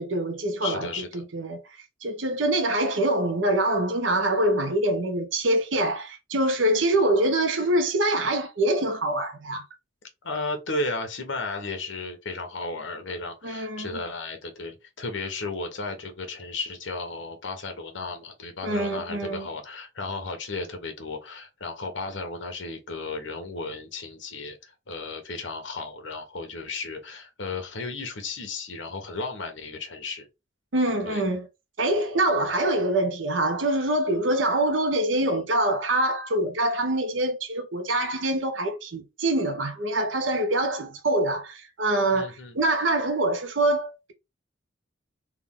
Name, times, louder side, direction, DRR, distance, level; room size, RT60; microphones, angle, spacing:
voice 1, 0.0-0.9 1.1-1.6 2.0-9.6 13.4-13.9 18.6-19.5 30.7-31.5 31.8-44.1, right 1 dB, 75° right, 0.8 m, -25 dB
voice 2, 0.6-1.2 10.2-30.3 31.0-31.2 42.1-42.6, left 3 dB, 75° left, 1.1 m, -34 dB
3.5 x 2.4 x 3.6 m
head